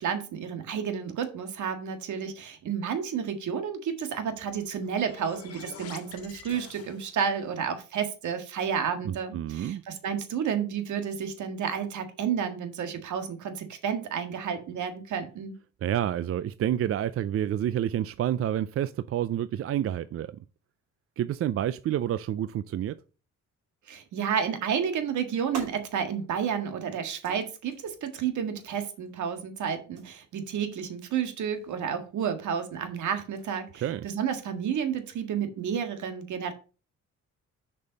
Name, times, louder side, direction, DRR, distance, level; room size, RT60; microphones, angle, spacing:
voice 1, 0.0-15.5 23.9-36.5, right 7 dB, 75° right, 1.8 m, -31 dB
sound 1, 4.4-7.4, left 7 dB, 55° left, 1.6 m, -47 dB
voice 2, 9.0-9.8 15.8-20.4 21.2-23.0 33.8-34.0, right 11 dB, 50° right, 0.4 m, -29 dB
sound 2, 24.9-35.2, right 6 dB, 90° right, 2.8 m, -50 dB
6.7 x 5.4 x 5.2 m
cardioid pair, 90°, 30 cm